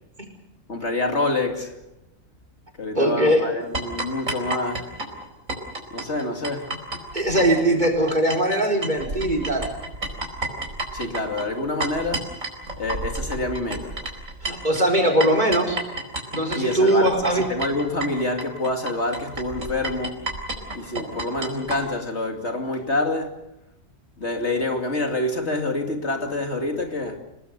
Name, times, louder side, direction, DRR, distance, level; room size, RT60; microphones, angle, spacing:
voice 1, 0.7-1.8 2.8-4.9 5.9-6.7 10.9-12.3 12.8-14.0 16.6-20.3 20.7-23.4 24.2-27.2, left 2 dB, 55° left, 2.8 m, -27 dB
voice 2, 2.9-3.4 7.1-9.7 14.4-15.8 16.3-17.4, right 1 dB, 35° right, 5.0 m, -20 dB
sound 1, 3.7-8.6 8.8-21.8, right 2 dB, 80° right, 5.0 m, -31 dB
29.5 x 19.0 x 6.7 m
omnidirectional pair, 1.4 m